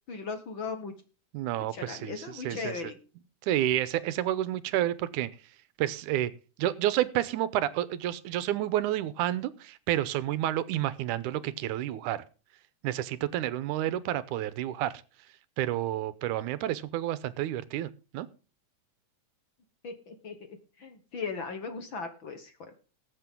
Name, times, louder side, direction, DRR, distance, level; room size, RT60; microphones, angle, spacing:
voice 1, 0.1-0.9 1.7-3.0 19.8-22.7, left 4 dB, 50° left, 8 dB, 1.6 m, -38 dB
voice 2, 1.3-2.7 3.5-5.3 5.8-6.3 6.6-12.2 12.8-14.9 15.6-18.3, right 13 dB, 85° right, 16 dB, 2.2 m, -30 dB
19.5 x 8.3 x 3.7 m, 0.35 s
omnidirectional pair, 3.5 m